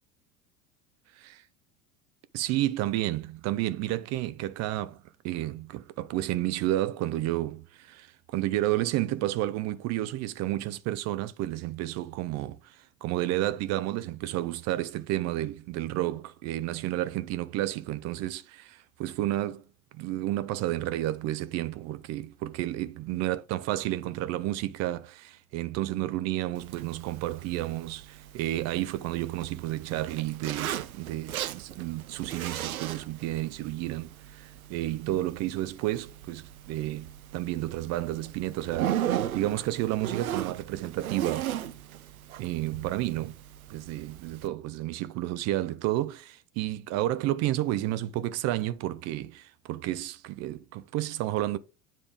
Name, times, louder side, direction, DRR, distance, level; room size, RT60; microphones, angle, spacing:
voice 1, 2.3-19.6 19.9-41.5 42.4-43.4 43.7-51.6, right 15 dB, 40° right, 0.6 m, -31 dB
Zipper (clothing), 26.5-44.5, right 11 dB, 85° right, 0.6 m, -37 dB
9.7 x 3.6 x 3.3 m
hypercardioid pair, 80°, 42 cm